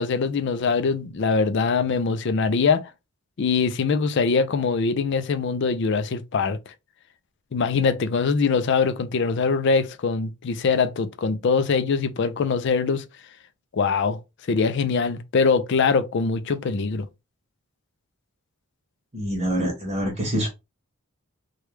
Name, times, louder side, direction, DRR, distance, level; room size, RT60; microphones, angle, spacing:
voice 1, 0.0-2.8 3.4-6.6 7.5-13.0 13.7-14.2 14.5-17.1, left 5 dB, 50° left, 0.4 m, -23 dB
voice 2, 19.1-20.5, equal, 30° right, 1.0 m, -25 dB
3.1 x 2.3 x 3.2 m
head